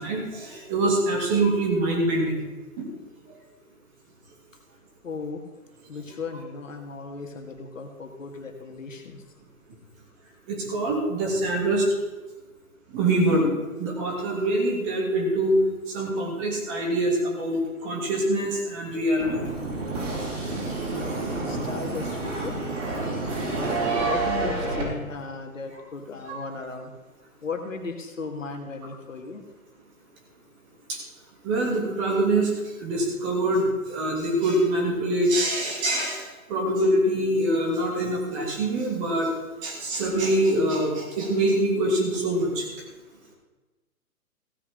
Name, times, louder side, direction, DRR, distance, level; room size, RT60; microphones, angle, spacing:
voice 1, 0.0-2.4 2.8-2.9 10.5-11.8 12.9-13.5 13.8-15.6 15.9-19.4 23.8-24.2 26.3-26.4 31.4-32.5 32.8-36.2 36.5-39.3 39.6-42.7, right 1 dB, 20° right, -1 dB, 2.9 m, -24 dB
voice 2, 5.0-5.4 5.9-9.2 20.0-20.2 20.7-20.9 21.4-22.6 22.9-23.5 24.1-26.9 27.4-29.4, left 4 dB, 60° left, 4 dB, 2.0 m, -36 dB
sound 1, 19.2-24.8, right 3 dB, 55° right, 4.9 m, -29 dB
16.0 x 6.2 x 6.4 m, 1.2 s
figure-of-eight pair, 140°, 44 cm